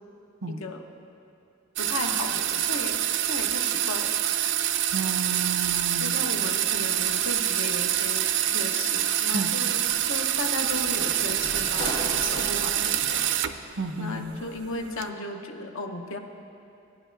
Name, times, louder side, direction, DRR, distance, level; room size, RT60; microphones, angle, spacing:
voice 1, 0.5-0.8 1.8-4.2 6.0-13.3 14.0-16.2, left 2 dB, 75° left, 4 dB, 0.8 m, -35 dB
sound 1, 1.8-13.6 14.0-15.0, right 11 dB, 60° right, 0.4 m, -26 dB
voice 2, 4.9-6.2 9.3-9.6 13.8-14.4, right 3 dB, 90° right, 7 dB, 0.7 m, -32 dB
Sliding door, 9.8-13.7, left 1 dB, 45° left, 1.8 m, -38 dB
17.0 x 10.5 x 2.6 m, 2.6 s
head